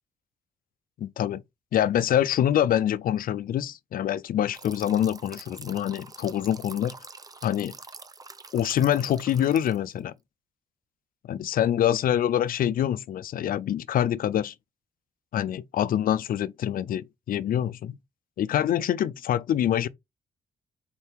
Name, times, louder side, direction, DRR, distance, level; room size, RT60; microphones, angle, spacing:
voice 1, 1.0-1.4 1.7-6.9 7.4-7.7 8.5-10.1 11.2-14.5 15.3-17.9 18.4-19.9, left 10 dB, 60° left, 0.4 m, -25 dB
sound 1, 4.5-10.0, right 4 dB, 20° right, 0.5 m, -46 dB
4.4 x 2.8 x 3.4 m
cardioid pair, 70°, 17 cm